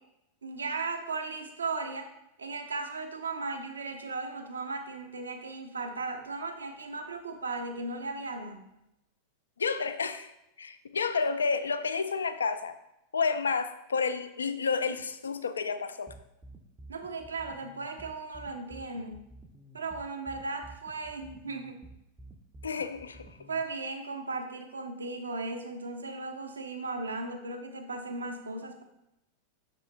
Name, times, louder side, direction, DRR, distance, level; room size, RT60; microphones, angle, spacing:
voice 1, 0.4-2.1 2.4-8.7 16.9-19.3 19.7-21.8 23.5-28.8, right 3 dB, 75° right, 6 dB, 0.7 m, -36 dB
voice 2, 9.6-10.3 10.6-12.7 13.1-16.1 22.6-23.3, left 5 dB, 70° left, 11 dB, 0.4 m, -30 dB
sound 1, 16.1-23.6, right 2 dB, 10° right, 0.5 m, -50 dB
7.4 x 6.3 x 2.2 m, 0.86 s
figure-of-eight pair, 90°, 0 cm